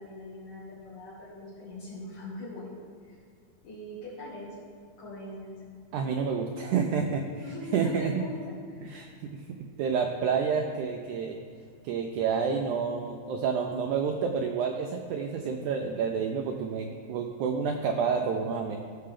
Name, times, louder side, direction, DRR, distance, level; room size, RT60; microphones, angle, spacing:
voice 1, 0.0-3.2 3.6-4.6 5.0-5.5 7.4-9.0, left 1 dB, 65° left, -9 dB, 3.8 m, -42 dB
voice 2, 5.9-7.2 7.7-8.1 8.9-9.4 9.8-11.4 11.8-18.8, right 6 dB, 85° right, 3 dB, 1.7 m, -29 dB
16.0 x 6.7 x 3.7 m, 2.1 s
omnidirectional pair, 4.1 m